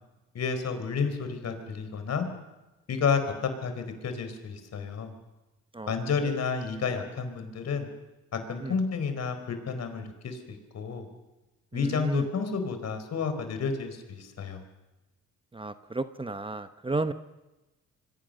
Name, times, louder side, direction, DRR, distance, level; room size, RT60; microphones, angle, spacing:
voice 1, 0.3-2.3 2.9-5.1 5.9-7.9 8.3-11.1 11.7-14.6, left 5 dB, 60° left, 8 dB, 4.5 m, -31 dB
voice 2, 11.7-12.3 15.5-17.1, right 3 dB, 15° right, 11 dB, 1.0 m, -33 dB
26.5 x 22.5 x 6.6 m, 1.1 s
cardioid pair, 90°, 30 cm